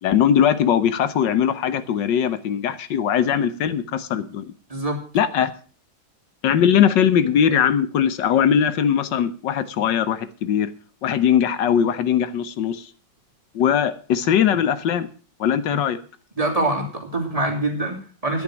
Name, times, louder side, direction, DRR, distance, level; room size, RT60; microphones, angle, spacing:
voice 1, 0.0-4.5 5.1-5.5 6.4-10.7 11.0-12.9 13.5-15.1 15.4-16.0, left 8 dB, 85° left, 13 dB, 1.6 m, -20 dB
voice 2, 4.7-5.0 15.7-15.8 16.4-18.4, right 1 dB, 20° right, 2 dB, 3.0 m, -24 dB
12.5 x 10.0 x 6.2 m, 0.39 s
omnidirectional pair, 1.9 m